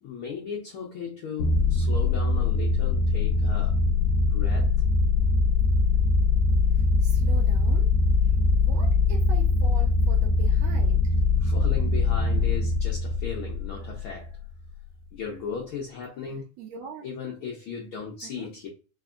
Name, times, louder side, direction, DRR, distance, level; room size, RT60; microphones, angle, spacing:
voice 1, 0.0-3.8 4.2-4.7 11.4-14.4 15.1-16.4 17.0-18.7, left 6 dB, 75° left, 1.2 m, -36 dB
sound 1, 1.4-14.3, left 3 dB, 90° left, 2.1 m, -22 dB
voice 2, 6.8-7.9 8.6-11.2 16.6-17.1 18.2-18.5, right 5 dB, 80° right, 1.7 m, -42 dB
4.7 x 3.0 x 2.4 m
omnidirectional pair, 3.4 m